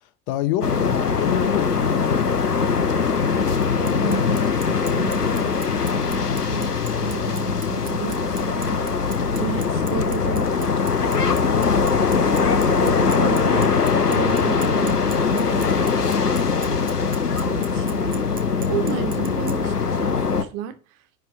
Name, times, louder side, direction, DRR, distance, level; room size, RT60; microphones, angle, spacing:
voice 1, 0.3-2.4, left 13 dB, 45° left, 1.0 m, -27 dB
sound 1, 0.6-20.4, left 5 dB, 85° left, 0.9 m, -21 dB
Bicycle, 3.6-19.5, right 8 dB, 20° right, 1.0 m, -40 dB
voice 2, 3.8-4.4 4.6-9.0 9.3-10.8 11.0-11.7 12.2-13.8 14.1-16.4 16.7-20.8, right 10 dB, 40° right, 1.3 m, -33 dB
10.5 x 3.5 x 6.8 m
figure-of-eight pair, 80°, 45 cm